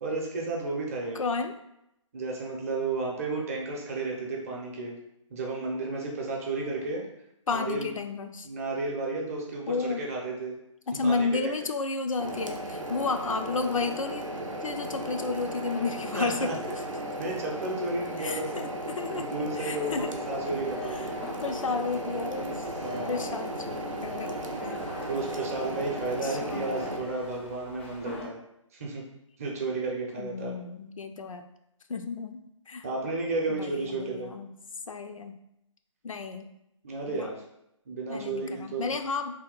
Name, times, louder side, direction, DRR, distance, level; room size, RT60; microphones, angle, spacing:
voice 1, 0.0-1.2 2.1-4.9 5.3-7.0 7.5-7.9 8.4-10.6 11.0-11.3 16.1-16.5 17.2-18.5 19.2-21.1 22.8-23.3 25.1-28.4 28.7-29.0 29.4-30.5 32.8-34.3 36.8-37.3 37.9-38.9, right 3 dB, 30° right, -2 dB, 0.6 m, -32 dB
voice 2, 1.1-1.6 7.5-8.5 9.7-10.0 10.9-14.2 14.6-16.8 18.2-20.2 20.5-20.6 20.9-21.1 21.4-22.7 23.1-24.3 24.6-24.8 26.2-26.9 30.2-31.5 31.9-32.9 33.5-34.5 34.9-35.4 36.0-36.5 37.1-37.3 38.1-39.3, left 4 dB, 85° left, 7 dB, 0.4 m, -32 dB
sound 1, 12.2-27.0, right 1 dB, 80° right, 0.6 m, -35 dB
sound 2, 19.9-28.3, left 3 dB, 20° left, 0.4 m, -44 dB
2.8 x 2.2 x 3.7 m, 0.83 s
figure-of-eight pair, 150°, 17 cm